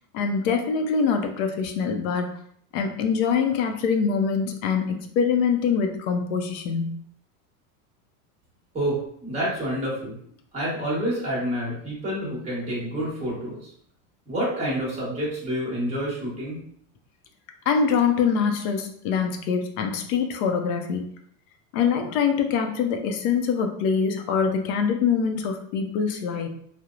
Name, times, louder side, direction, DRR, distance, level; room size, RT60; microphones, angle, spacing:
voice 1, 0.1-2.3 2.7-7.0 17.7-21.1 21.7-26.5, left 6 dB, 55° left, 5 dB, 0.5 m, -24 dB
voice 2, 8.7-10.2 10.5-13.7 14.3-16.6, equal, 15° right, -7 dB, 1.0 m, -28 dB
2.9 x 2.0 x 2.4 m, 0.65 s
supercardioid pair, 145°, 47 cm